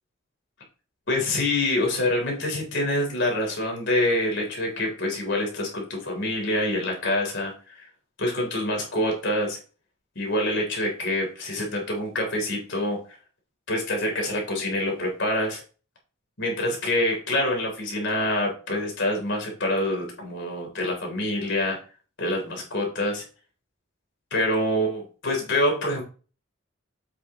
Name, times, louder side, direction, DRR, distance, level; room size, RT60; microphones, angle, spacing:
voice 1, 1.1-7.9 8.2-9.6 10.2-13.1 13.7-15.6 16.4-21.8 22.2-23.2 24.3-26.0, left 1 dB, 60° left, 1 dB, 3.5 m, -26 dB
8.6 x 7.0 x 3.1 m, 0.35 s
head